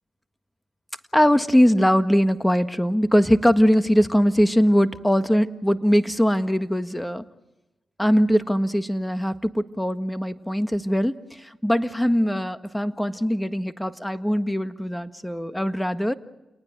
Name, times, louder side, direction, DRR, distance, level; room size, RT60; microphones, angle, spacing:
voice 1, 1.1-7.2 8.0-16.1, equal, 5° left, 10 dB, 1.6 m, -21 dB
29.0 x 19.5 x 8.0 m, 0.99 s
supercardioid pair, 50°, 0 cm